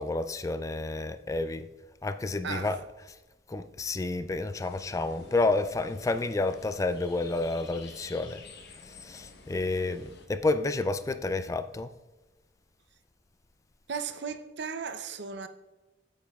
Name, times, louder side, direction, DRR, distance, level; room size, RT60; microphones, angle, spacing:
voice 1, 0.0-1.7 2.0-3.1 3.5-8.4 8.9-11.9, left 2 dB, 15° left, 0.3 m, -30 dB
voice 2, 2.4-2.8 13.9-15.5, right 6 dB, 60° right, 0.6 m, -36 dB
sound 1, 4.6-10.3, left 3 dB, 60° left, 0.9 m, -51 dB
9.0 x 8.8 x 2.3 m
head